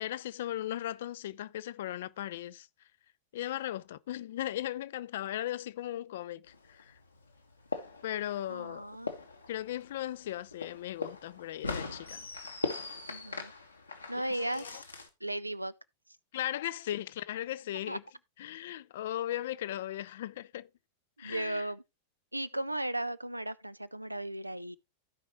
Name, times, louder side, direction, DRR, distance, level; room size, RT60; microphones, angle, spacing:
voice 1, 0.0-2.7 3.3-7.0 8.0-9.0 9.5-12.3 14.1-14.8 16.3-18.0 18.4-20.7 21.2-21.7, left 13 dB, 55° left, 0.4 m, -37 dB
sound 1, 6.5-15.1, left 3 dB, 80° left, 1.4 m, -41 dB
voice 2, 8.5-9.1 13.1-13.5 14.1-14.8 15.2-15.7 17.9-18.0 21.2-21.8 22.3-24.8, right 1 dB, 85° right, 0.5 m, -36 dB
15.5 x 5.2 x 3.0 m
figure-of-eight pair, 90°, 0 cm